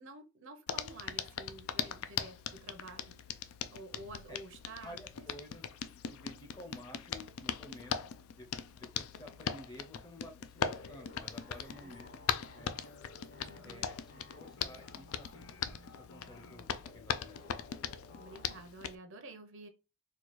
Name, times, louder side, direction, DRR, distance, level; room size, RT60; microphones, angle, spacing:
voice 1, 0.0-3.1 3.7-5.3 11.8-12.0 13.5-13.9 16.4-16.5 18.1-19.7, right 2 dB, 65° right, 0.7 m, -50 dB
Hands, 0.7-19.0, left 8 dB, 85° left, 0.4 m, -40 dB
voice 2, 4.8-5.6 6.0-12.8 13.6-17.6, left 1 dB, 20° left, 0.6 m, -52 dB
sound 1, 10.6-18.6, left 2 dB, 60° left, 1.0 m, -55 dB
4.2 x 2.3 x 3.0 m
head